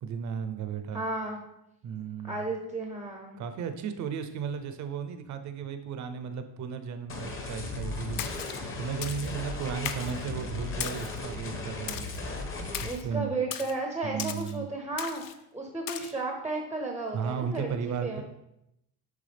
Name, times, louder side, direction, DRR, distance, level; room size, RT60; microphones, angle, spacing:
voice 1, 0.0-1.0 1.8-2.5 3.4-8.2 8.8-12.1 12.8-13.3 14.0-14.7 17.1-18.2, right 7 dB, 45° right, 9 dB, 0.6 m, -35 dB
voice 2, 0.9-1.4 2.2-3.4 12.8-15.2 15.5-17.7 18.0-18.2, right 2 dB, 5° right, 2 dB, 0.6 m, -33 dB
sound 1, 7.1-12.9, left 3 dB, 30° left, 1.0 m, -36 dB
Splash splatter, 8.2-8.6 9.0-9.3 9.9-10.2 10.8-11.2 11.9-12.2 12.7-13.0 13.5-13.7 14.2-14.5 15.0-15.3 15.9-16.1, left 10 dB, 55° left, 0.5 m, -37 dB
10.5 x 3.5 x 3.4 m, 0.83 s
cardioid pair, 140°, 41 cm